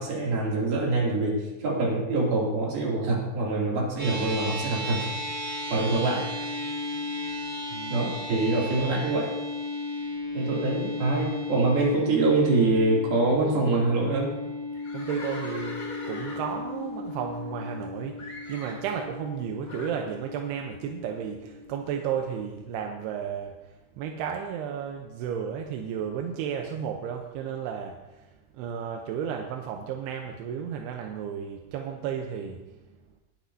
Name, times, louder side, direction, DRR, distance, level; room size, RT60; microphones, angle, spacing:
voice 1, 0.0-1.3 1.6-5.0 5.7-6.2 7.9-9.3 10.3-14.3, right 2 dB, 70° right, -3 dB, 4.5 m, -25 dB
sound 1, 4.0-22.5, left 2 dB, 30° right, 3.7 m, -35 dB
voice 2, 7.7-8.1 14.9-15.8 16.1-23.5 24.0-32.6, right 8 dB, 85° right, 3 dB, 2.8 m, -33 dB
Livestock farm animals working animals, 14.7-17.8 18.2-18.9 19.7-20.1, left 2 dB, 25° left, 2.4 m, -41 dB
20.5 x 10.5 x 2.7 m, 1.1 s
omnidirectional pair, 4.6 m